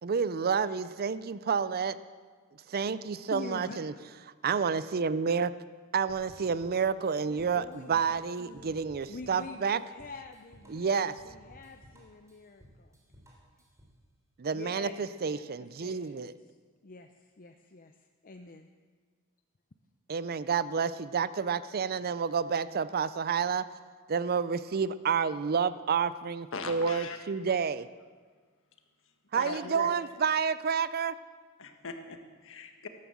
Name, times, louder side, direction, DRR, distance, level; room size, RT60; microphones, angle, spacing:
voice 1, 0.0-2.0 2.7-3.9 4.4-5.5 5.9-9.8 10.7-11.1 14.4-16.3 20.1-23.6 24.1-27.9 29.3-31.1, right 6 dB, 45° right, 15 dB, 0.5 m, -29 dB
voice 2, 3.3-4.1 7.2-8.8 9.1-13.0 14.5-15.0 15.2-16.6 16.8-18.0 18.2-18.7, left 3 dB, 40° left, 6 dB, 0.7 m, -46 dB
sound 1, 6.1-14.0, equal, 15° right, 3.6 m, -57 dB
voice 3, 26.5-27.2 29.3-29.9 31.6-32.9, left 3 dB, 60° left, 5 dB, 1.6 m, -39 dB
14.0 x 13.0 x 7.2 m, 1.5 s
head